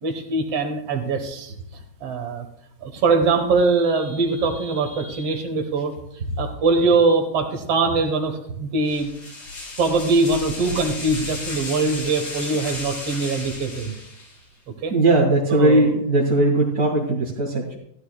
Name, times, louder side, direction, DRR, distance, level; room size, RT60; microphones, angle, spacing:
voice 1, 0.0-1.5 2.0-2.5 2.8-5.9 6.4-9.1 9.8-13.9 14.8-14.9 15.5-15.9, right 3 dB, 55° right, 5 dB, 1.9 m, -22 dB
sound 1, 8.9-14.4, left 2 dB, 50° left, 5.3 m, -34 dB
voice 2, 14.9-17.8, right 2 dB, 30° right, -5 dB, 1.9 m, -19 dB
15.5 x 13.5 x 2.4 m, 0.75 s
omnidirectional pair, 4.1 m